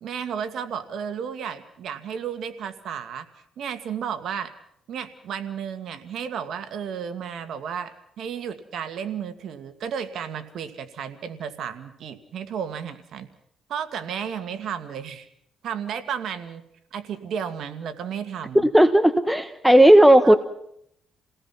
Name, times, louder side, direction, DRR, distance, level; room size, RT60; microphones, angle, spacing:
voice 1, 0.0-3.3 3.6-4.5 4.9-13.3 13.7-15.3 15.6-16.6 16.9-18.7 20.2-20.4, right 8 dB, 70° right, 10 dB, 2.0 m, -33 dB
voice 2, 18.5-20.4, right 1 dB, 5° right, 11 dB, 1.2 m, -14 dB
29.0 x 18.0 x 5.9 m, 0.71 s
cardioid pair, 90°, 0 cm